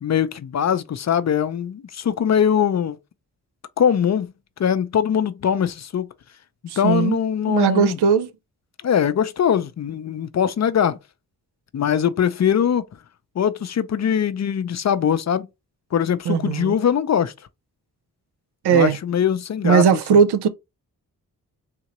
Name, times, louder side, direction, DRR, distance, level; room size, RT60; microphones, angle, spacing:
voice 1, 0.0-3.0 3.8-4.3 4.6-6.1 6.8-8.0 8.8-11.0 11.7-12.8 13.4-15.5 15.9-17.3 18.7-19.8 20.1-20.2, left 8 dB, 45° left, 0.5 m, -21 dB
voice 2, 6.7-7.2 7.5-8.3 16.3-16.8 18.6-19.0 19.6-20.5, right 7 dB, 85° right, 0.6 m, -18 dB
3.7 x 2.8 x 3.0 m
cardioid pair, 50°, 38 cm